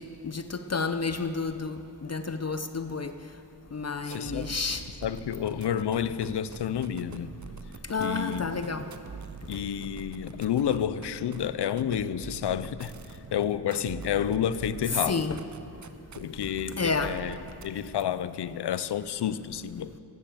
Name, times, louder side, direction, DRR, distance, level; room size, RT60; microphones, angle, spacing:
voice 1, 0.0-3.1 3.7-4.8 7.9-8.9 15.0-15.4 16.8-17.2, left 4 dB, 40° left, 9 dB, 0.7 m, -30 dB
sound 1, 4.0-18.0, right 5 dB, 45° right, 0.8 m, -45 dB
voice 2, 4.1-4.6 5.0-7.4 8.0-8.7 9.5-15.2 16.2-19.9, left 9 dB, 80° left, 15 dB, 0.6 m, -30 dB
13.5 x 10.0 x 7.4 m, 2.6 s
cardioid pair, 50°, 40 cm